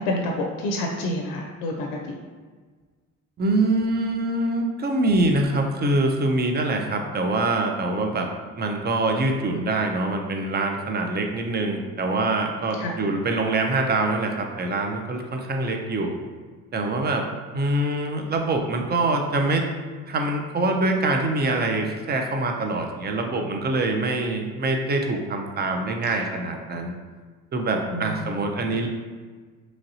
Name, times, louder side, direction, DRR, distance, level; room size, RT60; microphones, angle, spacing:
voice 1, 0.0-1.9 12.8-12.9 26.1-26.2 27.9-28.3, left 1 dB, 75° left, 1 dB, 0.5 m, -28 dB
voice 2, 3.4-8.3 8.6-16.2 16.7-17.2 17.5-19.6 20.1-26.9 27.5-28.9, right 2 dB, 30° right, 3 dB, 0.4 m, -24 dB
3.0 x 2.6 x 2.7 m, 1.4 s
supercardioid pair, 75°, 37 cm